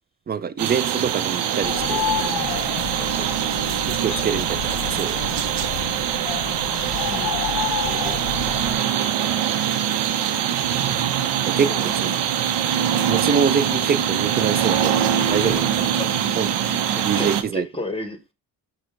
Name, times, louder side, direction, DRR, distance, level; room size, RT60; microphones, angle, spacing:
voice 1, 0.3-2.7 3.9-5.2 7.9-8.2 11.4-12.2 13.1-15.0 15.3-15.9 16.4-16.5 17.0-17.7, right 6 dB, 25° right, 0.3 m, -25 dB
sound 1, 0.6-17.4, right 9 dB, 80° right, 0.7 m, -23 dB
Bird, 1.6-8.7, left 10 dB, 60° left, 0.7 m, -30 dB
voice 2, 3.0-3.5 7.1-7.4 11.7-11.9 16.0-16.1 16.9-18.3, left 1 dB, 15° left, 1.1 m, -33 dB
6.0 x 2.3 x 3.8 m
cardioid pair, 80°, 41 cm